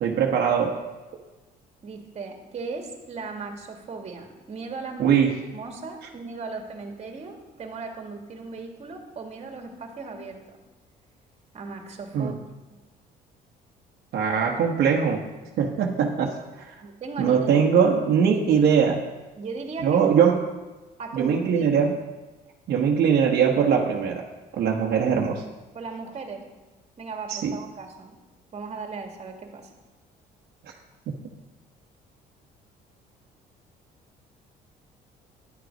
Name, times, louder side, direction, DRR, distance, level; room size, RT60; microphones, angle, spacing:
voice 1, 0.0-0.7 5.0-5.3 12.1-12.3 14.1-15.2 15.6-16.3 16.6-16.7 17.2-19.0 19.8-20.4 21.1-22.0 22.7-24.2 24.5-25.4 27.3-27.6, right 7 dB, 70° right, 0 dB, 1.2 m, -21 dB
voice 2, 1.8-5.2 5.5-10.6 11.5-12.3 16.8-17.6 19.4-20.2 21.0-21.7 25.7-26.5 27.0-28.2 28.5-29.7, right 4 dB, 40° right, 3 dB, 1.9 m, -37 dB
10.5 x 7.8 x 5.2 m, 1.2 s
cardioid pair, 110°, 17 cm